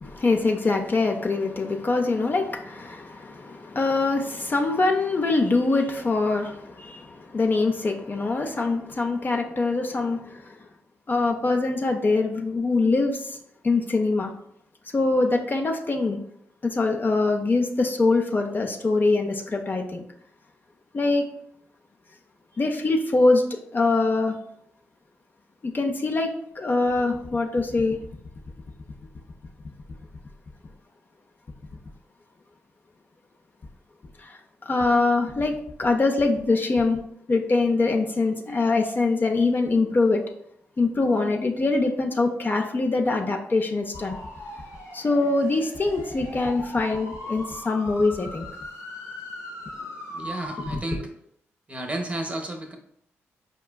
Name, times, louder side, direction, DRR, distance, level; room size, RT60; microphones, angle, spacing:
voice 1, 0.0-10.6 11.1-13.4 13.6-14.3 14.9-16.2 16.6-20.0 20.9-21.2 22.6-24.4 25.6-28.0 34.2-37.0 37.3-40.2 40.8-44.2 44.9-48.5 50.9-51.0, left 3 dB, 35° left, 2 dB, 0.4 m, -23 dB
sound 1, 43.9-50.8, left 1 dB, 75° left, 0.9 m, -39 dB
voice 2, 50.1-51.1 51.7-52.8, right 1 dB, 20° right, 3 dB, 0.7 m, -32 dB
4.6 x 2.2 x 2.2 m, 0.71 s
supercardioid pair, 50°, 6 cm